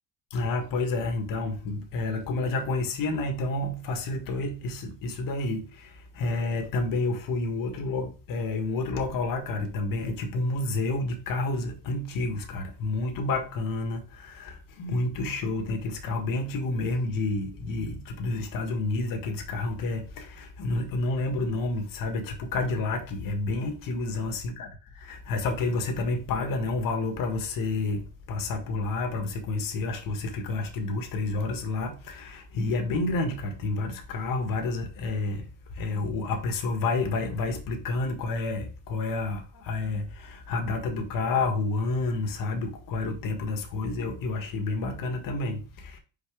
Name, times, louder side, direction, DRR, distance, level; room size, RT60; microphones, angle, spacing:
voice 1, 0.3-24.7 24.9-46.0, left 2 dB, 65° left, 1.8 m, -30 dB
6.2 x 4.8 x 3.4 m
cardioid pair, 140°, 36 cm